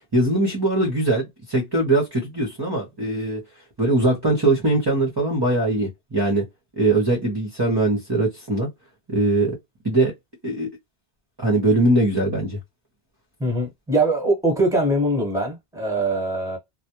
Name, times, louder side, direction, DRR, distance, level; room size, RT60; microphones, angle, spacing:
voice 1, 0.1-3.4 3.8-6.4 6.8-8.7 9.1-9.5 9.8-10.1 10.4-10.7 11.4-12.6, right 2 dB, 30° right, 0.6 m, -21 dB
voice 2, 13.4-16.6, right 1 dB, 5° right, 1.0 m, -22 dB
2.1 x 2.1 x 2.8 m
omnidirectional pair, 1.1 m